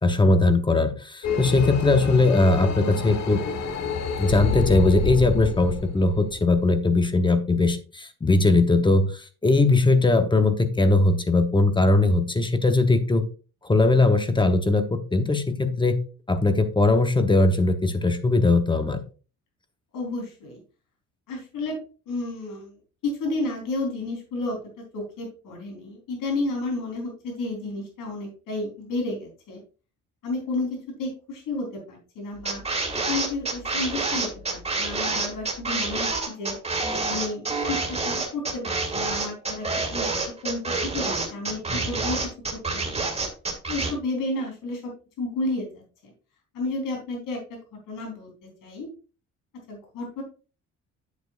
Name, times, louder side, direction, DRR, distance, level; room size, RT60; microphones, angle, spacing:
voice 1, 0.0-3.4 4.2-13.2 13.6-16.0 16.3-19.0, left 2 dB, 15° left, 8 dB, 0.9 m, -20 dB
sound 1, 1.2-7.0, left 5 dB, 55° left, 1.3 m, -28 dB
voice 2, 19.9-20.6 21.3-21.8 22.1-22.8 23.0-24.6 24.9-29.6 30.2-32.6 33.1-36.5 37.0-39.7 39.9-40.1 40.4-42.2 42.7-43.1 43.7-44.9 45.2-46.1 46.5-47.6 47.9-48.9 49.7-50.2, left 2 dB, 85° left, 1 dB, 3.9 m, -31 dB
sound 2, 32.4-43.9, right 3 dB, 20° right, 2.2 m, -27 dB
8.9 x 8.1 x 2.5 m, 0.35 s
cardioid pair, 135°, 32 cm